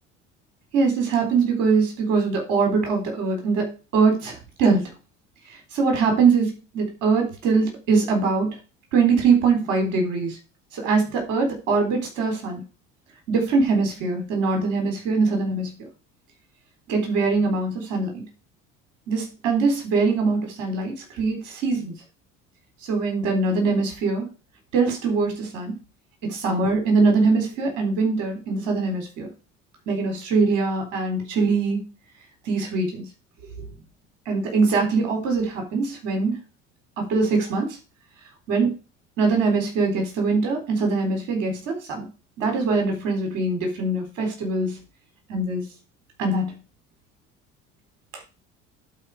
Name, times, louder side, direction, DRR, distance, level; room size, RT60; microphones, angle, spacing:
voice 1, 0.7-3.7 3.9-4.8 5.7-8.5 8.9-10.4 10.7-12.6 13.3-15.7 16.9-18.2 19.1-21.9 22.9-24.2 24.7-25.7 26.2-29.3 29.9-31.8 32.5-33.0 34.3-36.4 37.0-37.7 38.5-38.7 39.2-42.1 42.4-44.8 45.3-45.6 46.2-46.5, right 4 dB, 75° right, 3 dB, 4.0 m, -22 dB
11.0 x 4.5 x 4.8 m, 0.32 s
hypercardioid pair, 65°, 37 cm